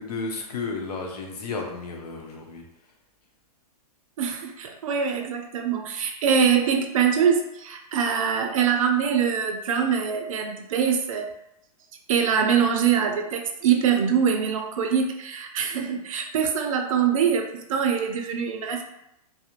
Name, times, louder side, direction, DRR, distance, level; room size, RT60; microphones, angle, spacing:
voice 1, 0.0-2.6, left 4 dB, 80° left, 1 dB, 0.7 m, -33 dB
voice 2, 4.2-11.3 12.1-18.8, right 7 dB, 60° right, 4 dB, 0.4 m, -23 dB
2.4 x 2.0 x 2.9 m, 0.82 s
hypercardioid pair, 160°, 20 cm